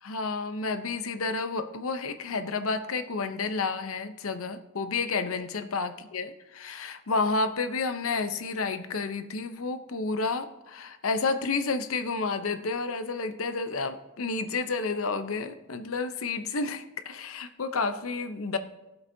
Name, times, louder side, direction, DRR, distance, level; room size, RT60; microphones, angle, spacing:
voice 1, 0.0-18.6, left 4 dB, 75° left, 10 dB, 0.7 m, -30 dB
17.5 x 7.9 x 2.7 m, 1.0 s
head